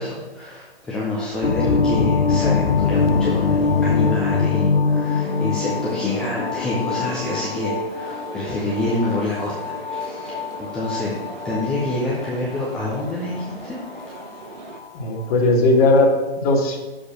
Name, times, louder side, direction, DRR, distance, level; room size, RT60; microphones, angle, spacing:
voice 1, 0.0-11.1 11.4-13.8, left 2 dB, 5° left, -7 dB, 0.3 m, -27 dB
sound 1, 1.4-14.9, left 5 dB, 75° left, 0.7 m, -23 dB
sound 2, 5.2-14.8, right 5 dB, 50° right, 1.0 m, -38 dB
voice 2, 14.9-16.8, left 2 dB, 40° left, -1 dB, 1.5 m, -17 dB
6.7 x 4.9 x 5.9 m, 1.2 s
figure-of-eight pair, 125°, 30 cm